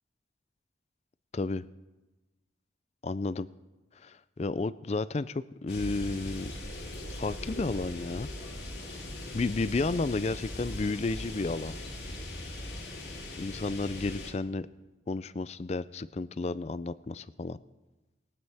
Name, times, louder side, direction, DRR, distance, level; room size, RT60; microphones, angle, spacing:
voice 1, 1.3-1.7 3.0-3.5 4.0-6.5 7.2-8.3 9.3-11.8 13.4-14.7 15.1-17.6, left 3 dB, 35° left, 16 dB, 0.4 m, -32 dB
sound 1, 5.7-14.3, left 1 dB, 55° left, 2.7 m, -40 dB
21.0 x 9.6 x 3.5 m, 1.1 s
head